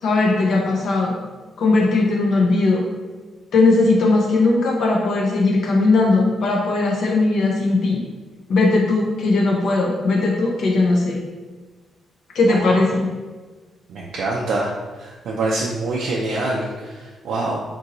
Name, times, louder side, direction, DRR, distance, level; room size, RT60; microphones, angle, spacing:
voice 1, 0.0-1.2 1.6-2.8 3.5-8.0 8.5-11.2 12.3-13.1, left 3 dB, 65° left, -1 dB, 0.4 m, -18 dB
voice 2, 13.9-14.7 15.0-17.6, right 2 dB, 80° right, -3 dB, 0.4 m, -25 dB
3.7 x 2.6 x 2.8 m, 1.3 s
cardioid pair, 135°, 0 cm